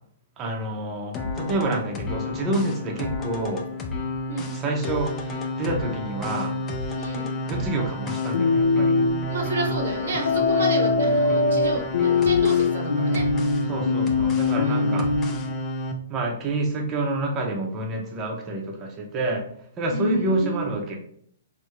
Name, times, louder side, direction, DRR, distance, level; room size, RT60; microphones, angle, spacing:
voice 1, 0.4-3.7 4.5-6.5 7.4-9.0 13.7-15.1 16.1-19.4 19.8-21.0, right 2 dB, 25° right, 0 dB, 0.6 m, -28 dB
sound 1, 1.1-15.9, left 2 dB, 25° left, 0.5 m, -30 dB
voice 2, 7.0-7.3 9.3-13.3 14.6-14.9 19.9-20.7, right 1 dB, 70° right, 4 dB, 0.7 m, -30 dB
sound 2, 8.3-9.1 10.3-15.3, left 4 dB, 80° left, 0.4 m, -22 dB
3.4 x 2.1 x 2.9 m, 0.64 s
hypercardioid pair, 125°, 0 cm